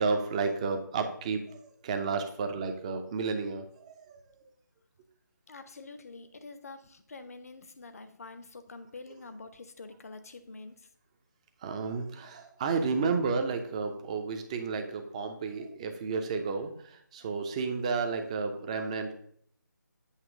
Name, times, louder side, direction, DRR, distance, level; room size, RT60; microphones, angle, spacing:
voice 1, 0.0-4.3 11.6-19.1, right 4 dB, 20° right, 6 dB, 0.6 m, -32 dB
voice 2, 5.5-10.9, left 3 dB, 50° left, 10 dB, 0.7 m, -46 dB
8.2 x 3.0 x 5.9 m, 0.64 s
figure-of-eight pair, 155°, 10 cm